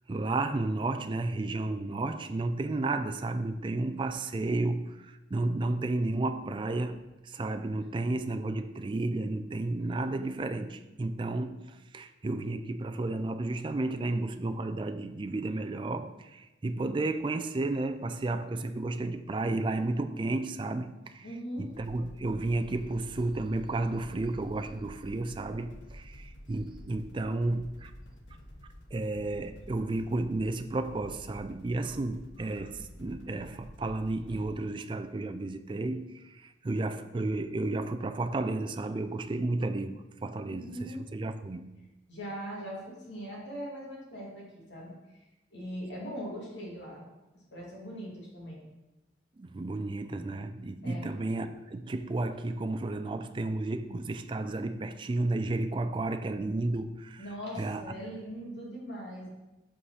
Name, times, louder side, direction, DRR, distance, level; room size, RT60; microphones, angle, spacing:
voice 1, 0.1-21.3 21.6-27.9 28.9-41.7 49.4-57.3 57.6-57.9, right 2 dB, 25° right, 0.3 m, -32 dB
voice 2, 21.2-21.7 40.4-41.1 42.1-44.9 45.5-47.0 47.5-48.6 50.8-51.1 57.2-59.3, equal, 70° left, 2.2 m, -40 dB
sound 1, 21.7-34.5, equal, 85° left, 1.0 m, -49 dB
5.3 x 4.9 x 5.5 m
head